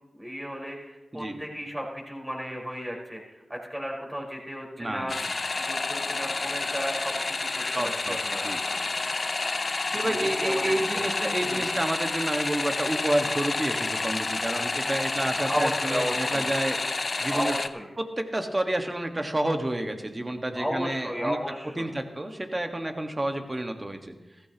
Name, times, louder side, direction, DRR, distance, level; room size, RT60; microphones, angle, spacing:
voice 1, 0.1-5.2 5.7-8.4 10.4-11.1 11.4-11.7 15.4-16.5 17.3-17.9 20.5-22.0, equal, 15° right, -2 dB, 4.6 m, -34 dB
voice 2, 4.8-5.2 7.6-8.6 9.9-16.8 17.2-17.5 18.0-21.4 21.8-24.1, right 1 dB, 30° right, 5 dB, 1.6 m, -29 dB
sound 1, 5.1-17.7, left 3 dB, 55° left, 0.6 m, -29 dB
15.0 x 14.5 x 3.0 m, 1.0 s
cardioid pair, 45°, 0 cm